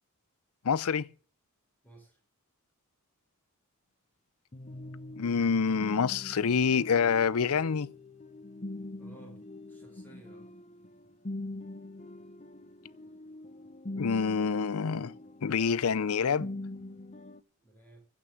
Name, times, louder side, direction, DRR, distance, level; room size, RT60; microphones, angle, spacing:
voice 1, 0.6-1.1 5.2-7.9 14.0-15.1 15.4-16.5, left 6 dB, 80° left, 0.5 m, -27 dB
voice 2, 1.8-2.2 9.0-9.4 9.7-10.5 17.6-18.0, right 2 dB, 10° left, 5.2 m, -55 dB
sound 1, 4.5-17.4, left 2 dB, 30° left, 0.8 m, -43 dB
15.0 x 6.1 x 7.6 m
head